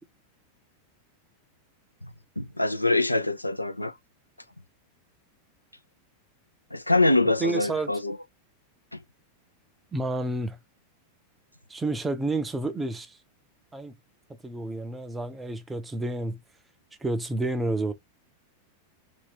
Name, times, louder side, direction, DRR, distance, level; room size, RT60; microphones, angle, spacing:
voice 1, 2.4-3.9 6.7-8.2, left 2 dB, 85° left, 0.5 m, -24 dB
voice 2, 7.4-7.9 9.9-10.6 11.7-13.2 13.7-13.9 14.4-16.4 17.0-17.9, right 2 dB, 10° right, 0.6 m, -30 dB
2.7 x 2.5 x 3.4 m
figure-of-eight pair, 90°, 0 cm